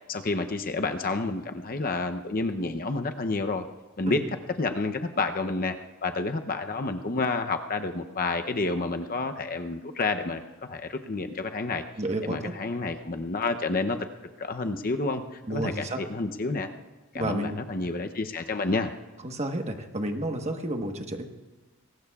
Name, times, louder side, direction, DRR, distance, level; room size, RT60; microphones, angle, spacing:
voice 1, 0.1-3.6 4.0-4.2 4.6-5.7 6.0-10.4 10.7-11.8 12.3-14.0 14.4-15.2 15.5-16.7 17.1-18.9, left 3 dB, 40° left, 7 dB, 0.7 m, -29 dB
voice 2, 12.0-12.5 15.4-16.0 17.1-17.6 19.2-21.3, right 1 dB, 30° right, 4 dB, 1.2 m, -31 dB
22.0 x 19.0 x 2.4 m, 1.2 s
head